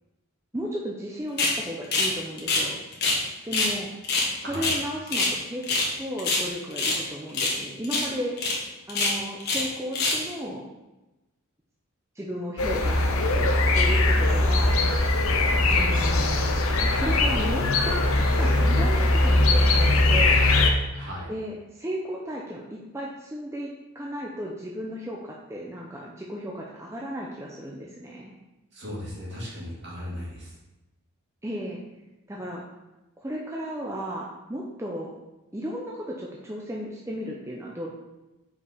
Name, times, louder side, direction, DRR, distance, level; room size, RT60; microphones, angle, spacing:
voice 1, 0.5-2.9 3.4-3.9 4.3-5.6 6.0-8.4 8.9-10.7 12.1-13.0 13.3-15.1 15.7-16.3 16.9-20.4 21.3-28.3 31.4-31.8 32.3-32.6 33.2-35.1 35.5-37.9, equal, 15° right, -3 dB, 0.6 m, -34 dB
sound 1, 1.4-1.6 1.9-2.1 2.4-3.2 3.5-3.7 4.0-5.4 5.6-5.9 6.2-7.0 7.3-7.6 7.8-8.1 8.4-8.6 8.9-9.7 9.9-10.3, left 3 dB, 45° left, 1.3 m, -25 dB
sound 2, 12.6-20.7, left 2 dB, 75° left, 0.7 m, -21 dB
voice 2, 20.9-21.3 28.7-30.5, left 1 dB, 50° right, -6 dB, 2.3 m, -37 dB
5.4 x 4.7 x 4.9 m, 1.0 s
head